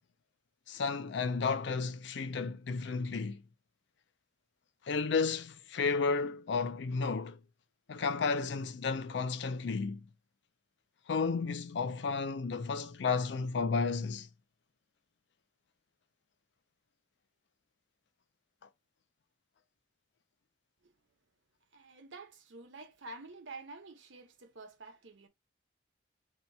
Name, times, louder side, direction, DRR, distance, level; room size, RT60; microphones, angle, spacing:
voice 1, 0.7-3.4 4.9-7.4 7.9-10.0 11.1-14.3, left 4 dB, 70° left, 0.4 m, -32 dB
voice 2, 21.7-25.3, right 3 dB, 75° right, 0.8 m, -49 dB
2.8 x 2.3 x 4.0 m
head